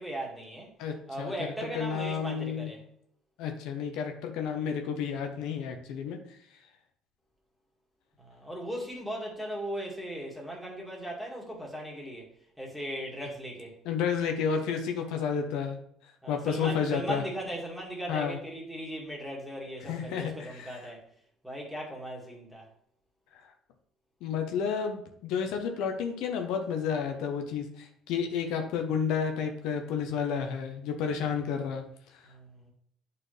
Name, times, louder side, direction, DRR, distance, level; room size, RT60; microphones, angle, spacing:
voice 1, 0.0-0.7 1.1-2.8 8.2-12.3 12.6-13.8 16.2-21.0 21.4-22.7 32.3-32.7, right 1 dB, ahead, 2.0 m, -38 dB
voice 2, 0.8-1.3 1.7-2.7 3.4-6.2 13.8-15.8 16.3-17.2 18.1-18.4 19.8-20.8 24.2-31.8, left 6 dB, 80° left, 0.8 m, -31 dB
8.7 x 4.3 x 3.3 m
cardioid pair, 115°, 0 cm